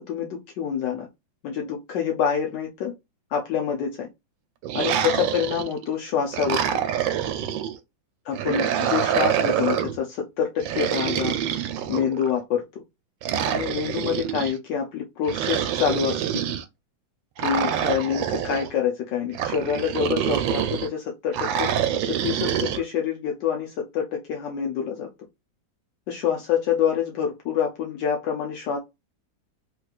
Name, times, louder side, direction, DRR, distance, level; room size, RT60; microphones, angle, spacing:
voice 1, 0.1-1.1 1.4-2.9 3.3-4.1 4.7-6.8 8.2-12.8 13.5-16.4 17.4-25.1 26.1-28.8, left 8 dB, 75° left, 1.3 m, -27 dB
sound 1, 4.6-5.9 6.3-7.8 8.3-10.0 10.6-12.3 13.2-14.5 15.3-16.6 17.4-18.7 19.3-20.9 21.3-22.8, right 9 dB, 80° right, 1.3 m, -26 dB
3.3 x 3.0 x 2.3 m
omnidirectional pair, 2.0 m